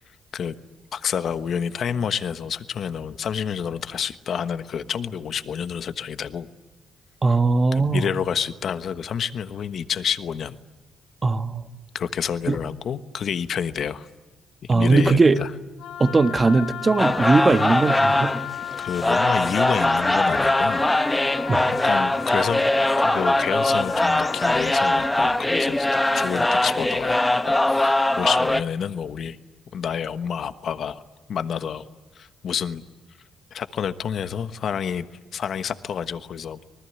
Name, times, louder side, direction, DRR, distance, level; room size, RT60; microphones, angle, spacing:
voice 1, 0.9-6.5 7.7-10.6 11.9-14.1 14.7-15.5 18.8-20.8 21.8-22.7 23.0-29.4 29.7-31.0 31.3-31.9 32.1-32.8 33.5-35.1 35.3-36.6, left 7 dB, 60° left, 11 dB, 1.2 m, -29 dB
voice 2, 7.2-8.0 11.2-11.6 12.5-12.6 14.7-15.4 16.0-18.4 21.5-21.6, right 3 dB, 30° right, 9 dB, 1.4 m, -19 dB
Wind instrument woodwind instrument, 15.8-24.9, left 11 dB, 90° left, 1.5 m, -34 dB
sound 1, 17.0-28.6, left 1 dB, 10° left, 1.0 m, -21 dB
26.0 x 20.0 x 10.0 m, 1.2 s
cardioid pair, 90°, 0 cm